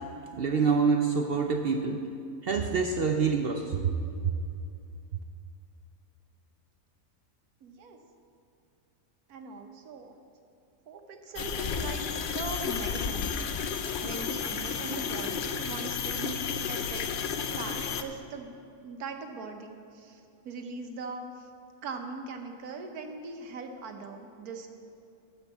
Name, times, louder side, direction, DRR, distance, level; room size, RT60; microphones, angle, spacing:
voice 1, 0.3-2.0 2.4-3.9, right 5 dB, 60° right, 4 dB, 0.6 m, -26 dB
voice 2, 7.6-8.0 9.3-10.1 10.9-12.1 12.3-16.4 16.7-17.1 17.4-18.5 18.8-21.5 21.8-24.7, right 4 dB, 75° right, 4 dB, 1.5 m, -40 dB
sound 1, 11.3-18.0, left 6 dB, 75° left, 0.4 m, -32 dB
10.5 x 7.4 x 7.1 m, 2.6 s
omnidirectional pair, 1.6 m